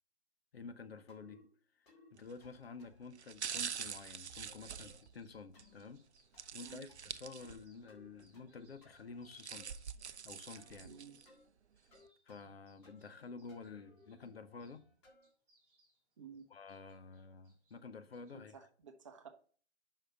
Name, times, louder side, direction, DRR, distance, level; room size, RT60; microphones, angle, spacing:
voice 1, 0.5-1.5 1.8-6.1 6.5-9.8 10.2-10.9 12.3-14.9 16.5-18.7, left 4 dB, 60° left, 0.8 m, -51 dB
sound 1, 1.1-1.4 1.9-2.1 2.4-3.1 3.5-3.8 4.5-5.0 5.5-5.9 6.3-6.6 6.9-7.6 7.9-8.5 8.8-9.7 10.5-10.8 11.2-11.4 11.9-12.6 12.8-13.2 13.5-15.3, left 2 dB, 25° left, 1.7 m, -64 dB
sound 2, 2.2-2.5 3.1-5.7 6.4-7.8 8.2-8.3 9.1-11.3 11.7-11.8, right 7 dB, 75° right, 0.6 m, -45 dB
sound 3, 5.0-6.4 6.7-7.9 8.2-14.8 15.2-18.3, right 2 dB, 10° right, 2.0 m, -74 dB
voice 2, 10.8-11.2 16.2-16.5 18.3-19.3, right 7 dB, 30° right, 0.8 m, -53 dB
5.6 x 4.9 x 5.7 m
figure-of-eight pair, 150°, 34 cm